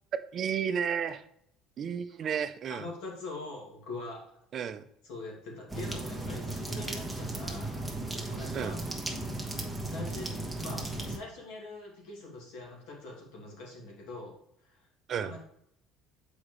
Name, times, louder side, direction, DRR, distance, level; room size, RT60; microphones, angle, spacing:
voice 1, 0.3-1.2 1.8-2.9 4.5-4.8 8.5-8.8 15.1-15.3, right 7 dB, 45° right, 11 dB, 0.5 m, -32 dB
voice 2, 2.7-4.2 5.0-8.0 8.3-8.8 9.9-10.3 10.6-14.8 15.2-15.5, left 2 dB, 85° left, -2 dB, 2.5 m, -43 dB
sound 1, 5.7-11.2, right 2 dB, ahead, 1.1 m, -36 dB
7.1 x 4.9 x 3.2 m, 0.73 s
cardioid pair, 130°, 0 cm